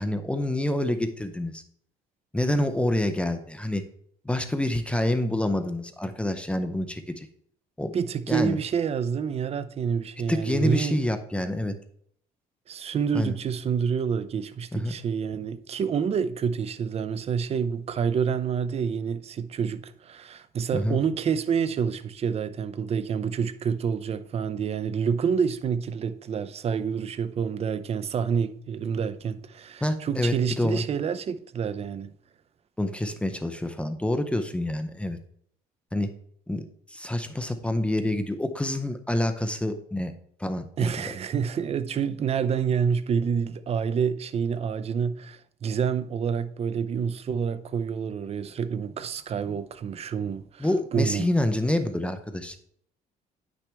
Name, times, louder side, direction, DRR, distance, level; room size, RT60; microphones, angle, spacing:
voice 1, 0.0-1.6 2.3-3.8 4.2-7.3 7.8-7.9 8.3-8.6 10.3-11.7 13.1-13.3 14.7-14.9 20.7-21.0 29.8-30.8 32.8-35.2 35.9-36.1 36.5-40.1 40.4-41.1 50.6-52.6, left 1 dB, 5° left, 0.7 m, -27 dB
voice 2, 7.9-11.0 12.7-32.1 40.8-51.3, right 7 dB, 35° right, 0.6 m, -28 dB
9.4 x 6.1 x 3.4 m
cardioid pair, 110°, 17 cm